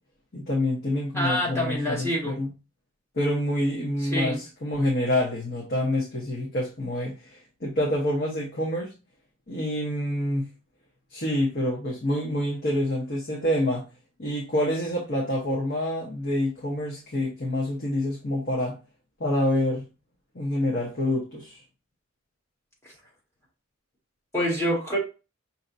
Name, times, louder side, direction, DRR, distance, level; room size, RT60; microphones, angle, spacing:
voice 1, 0.3-2.5 3.1-8.9 9.5-10.5 11.1-13.8 14.2-18.7 19.2-19.8 20.3-21.6, left 1 dB, 55° left, -3 dB, 1.1 m, -27 dB
voice 2, 1.1-2.4 4.1-4.4 22.8-22.9 24.3-25.0, equal, 15° left, -3 dB, 1.7 m, -26 dB
5.7 x 2.8 x 2.7 m, 0.31 s
head